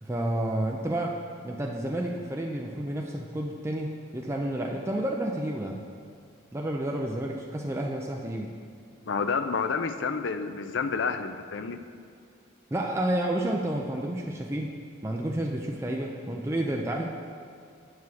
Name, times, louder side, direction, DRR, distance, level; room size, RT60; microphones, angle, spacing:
voice 1, 0.0-5.8 6.5-8.5 12.7-14.8 15.0-17.1, right 1 dB, 15° right, 0 dB, 0.4 m, -30 dB
voice 2, 9.1-11.8, left 5 dB, 60° left, 9 dB, 0.4 m, -29 dB
7.8 x 4.8 x 7.0 m, 2.2 s
head